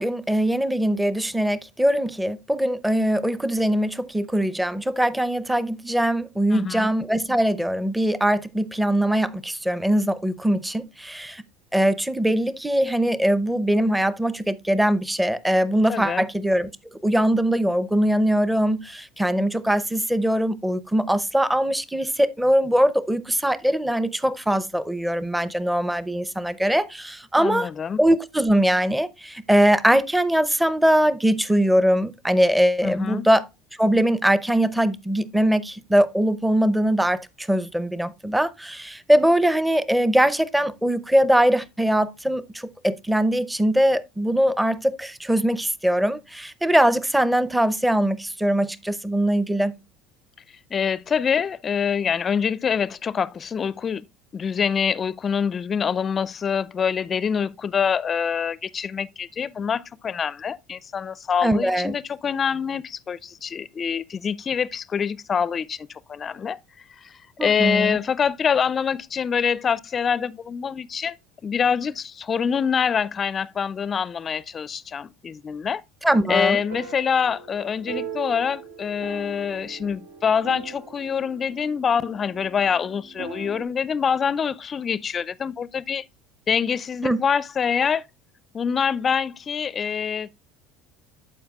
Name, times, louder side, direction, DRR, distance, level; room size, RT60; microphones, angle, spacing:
voice 1, 0.0-11.4 11.7-16.7 17.0-27.7 28.0-33.5 33.8-49.8 61.4-62.0 67.4-68.0 76.0-76.6 87.0-87.2, right 1 dB, 5° right, 0.6 m, -21 dB
voice 2, 6.5-6.9 15.9-16.3 27.4-28.0 32.8-33.3 50.7-54.1 54.3-66.6 67.4-71.2 71.4-75.8 76.3-86.0 86.5-88.0 88.5-90.3, left 7 dB, 35° left, 0.4 m, -25 dB
sound 1, 76.2-83.6, right 7 dB, 85° right, 0.9 m, -40 dB
12.5 x 4.7 x 2.3 m
supercardioid pair, 85°, 0 cm